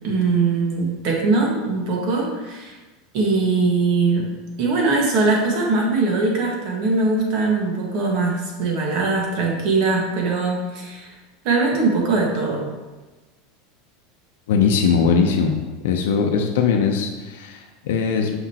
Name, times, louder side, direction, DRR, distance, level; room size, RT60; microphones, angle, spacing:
voice 1, 0.0-2.7 3.1-4.3 4.6-11.1 11.4-12.7, right 3 dB, 55° right, -1 dB, 1.6 m, -21 dB
voice 2, 14.5-18.3, left 6 dB, 80° left, 2 dB, 0.6 m, -20 dB
6.0 x 5.3 x 2.9 m, 1.2 s
supercardioid pair, 140°, 0 cm